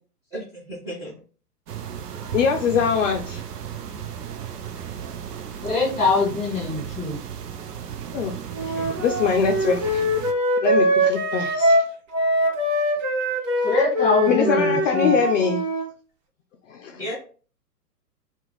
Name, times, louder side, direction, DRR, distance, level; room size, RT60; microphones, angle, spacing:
voice 1, 0.3-1.2 8.6-9.0 17.0-17.2, equal, 5° right, -8 dB, 0.9 m, -35 dB
sound 1, 1.7-10.3, right 8 dB, 70° right, 0.7 m, -35 dB
voice 2, 2.3-3.4 8.1-8.3 9.0-10.0 10.6-11.8 14.3-15.6 16.7-17.0, left 7 dB, 50° left, 2 dB, 0.5 m, -23 dB
voice 3, 5.6-7.2 13.6-15.1, left 3 dB, 15° left, -2 dB, 1.7 m, -23 dB
Wind instrument woodwind instrument, 8.5-15.8, equal, 50° right, 1.2 m, -22 dB
2.9 x 2.4 x 3.8 m, 0.40 s
hypercardioid pair, 120°, 48 cm